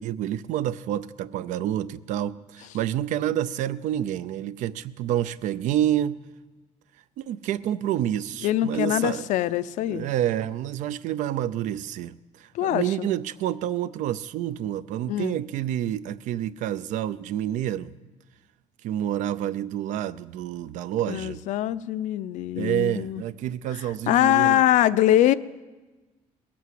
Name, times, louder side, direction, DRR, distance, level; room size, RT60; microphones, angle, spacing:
voice 1, 0.0-6.2 7.2-9.3 9.8-17.9 18.8-21.4 22.6-24.6, right 11 dB, 70° right, 16 dB, 0.5 m, -28 dB
voice 2, 8.4-10.1 12.5-13.1 15.0-15.4 21.1-23.2 24.1-25.3, left 13 dB, 70° left, 15 dB, 0.5 m, -23 dB
20.0 x 8.4 x 7.7 m, 1.2 s
cardioid pair, 165°, 13 cm